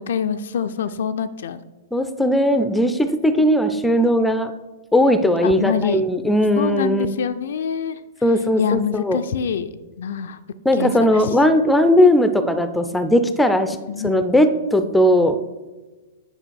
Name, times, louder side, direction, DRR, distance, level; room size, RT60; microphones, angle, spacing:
voice 1, 0.0-1.6 3.4-3.5 5.4-6.0 6.6-8.0 8.6-10.4 10.8-11.2 13.9-14.1, left 7 dB, 60° left, 11 dB, 0.4 m, -25 dB
voice 2, 1.9-4.5 4.9-7.1 8.2-9.2 10.6-13.8 14.0-15.4, left 1 dB, 5° left, 10 dB, 0.5 m, -18 dB
9.7 x 5.0 x 4.6 m, 1.2 s
figure-of-eight pair, 105°, 0 cm